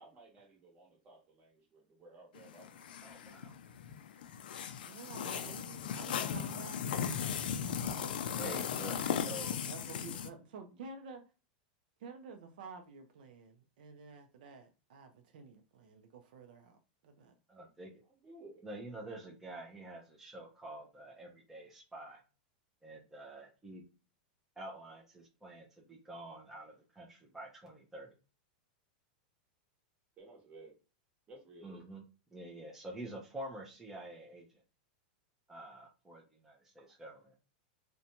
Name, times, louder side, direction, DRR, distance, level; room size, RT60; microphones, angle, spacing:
voice 1, 0.0-3.5 4.8-5.6 17.6-17.7 18.1-18.6 30.2-30.8 31.3-31.8 36.8-36.9, right 2 dB, 25° right, 1.1 m, -57 dB
sound 1, 2.3-10.3, left 8 dB, 85° left, 0.3 m, -37 dB
voice 2, 3.0-3.5 8.3-9.6 17.5-18.0 18.6-22.2 22.8-23.8 24.6-28.1 31.6-32.0 32.3-34.6 35.5-37.3, right 1 dB, 5° right, 0.5 m, -48 dB
voice 3, 4.8-8.2 9.6-11.2 12.0-17.4, right 4 dB, 70° right, 0.5 m, -51 dB
2.5 x 2.2 x 2.8 m
supercardioid pair, 145°, 5 cm